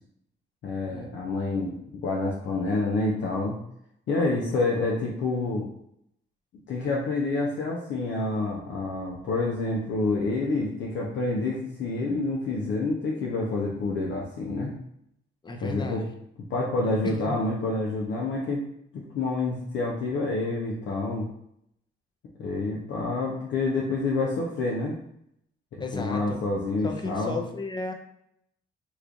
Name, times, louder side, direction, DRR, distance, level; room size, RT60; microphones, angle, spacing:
voice 1, 0.6-1.8 2.0-3.6 4.1-5.7 6.7-14.7 15.6-16.0 16.5-18.6 18.9-21.3 22.4-25.0 25.7-27.4, left 3 dB, 65° left, -3 dB, 0.7 m, -28 dB
voice 2, 15.4-16.1 17.3-17.4 25.8-26.4 26.8-27.9, left 2 dB, 20° left, 3 dB, 0.6 m, -34 dB
3.1 x 2.5 x 3.6 m, 0.75 s
cardioid pair, 90°, 20 cm